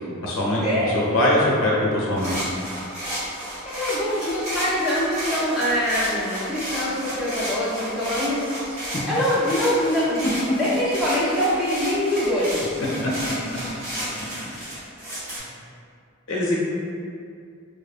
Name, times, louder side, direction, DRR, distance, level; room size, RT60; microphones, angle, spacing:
voice 1, 0.2-0.6 0.9-2.3 8.9-9.0 15.4-15.5 16.3-16.6, left 1 dB, 70° left, -5 dB, 0.6 m, -22 dB
sound 1, 2.2-15.4, equal, 30° right, 0.8 m, -32 dB
voice 2, 3.6-8.8 9.1-12.8 13.9-14.0, equal, ahead, -10 dB, 0.4 m, -24 dB
2.9 x 2.0 x 2.4 m, 2.3 s
head